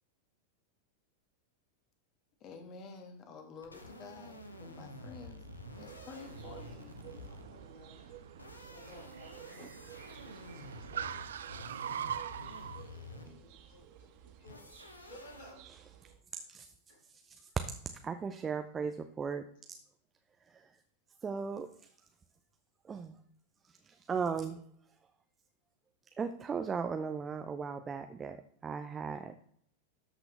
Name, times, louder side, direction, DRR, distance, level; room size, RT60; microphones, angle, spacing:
voice 1, 2.4-5.5 5.8-7.6, left 5 dB, 35° left, 4 dB, 1.8 m, -51 dB
sound 1, 3.6-7.7 8.3-13.5 14.5-15.5, left 2 dB, 80° left, 1.2 m, -50 dB
Car, 3.9-12.8, right 8 dB, 65° right, 0.4 m, -45 dB
sound 2, 5.7-16.1, right 10 dB, 45° right, 1.9 m, -55 dB
voice 2, 6.3-6.9 7.3-10.9 11.2-12.0 12.3-15.9 16.3-17.0, equal, 65° left, -4 dB, 4.4 m, -58 dB
voice 3, 18.0-19.4 19.7-19.8 21.2-21.7 22.9-23.2 24.1-24.6 26.2-29.3, right 5 dB, 20° right, 7 dB, 0.6 m, -36 dB
12.5 x 6.0 x 3.4 m, 0.65 s
figure-of-eight pair, 90°, 0 cm